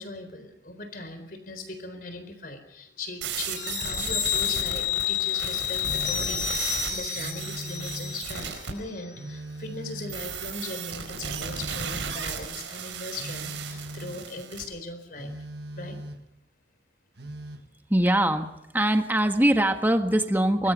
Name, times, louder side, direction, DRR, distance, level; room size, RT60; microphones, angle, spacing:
voice 1, 0.0-15.4 15.8-16.0, left 2 dB, 50° left, 9 dB, 4.2 m, -39 dB
sound 1, 3.2-8.7 10.1-14.6, right 6 dB, 85° right, 4.8 m, -35 dB
sound 2, 3.6-8.7 9.0-9.1, left 12 dB, 75° left, 2.3 m, -30 dB
Telephone, 5.8-6.4 7.1-8.4 9.1-10.4 11.1-12.4 13.1-14.3 15.2-16.4 17.2-17.7, right 1 dB, 65° right, 1.7 m, -40 dB
voice 2, 17.9-20.7, right 1 dB, 10° right, 6 dB, 1.5 m, -22 dB
24.0 x 21.5 x 5.3 m, 0.88 s
head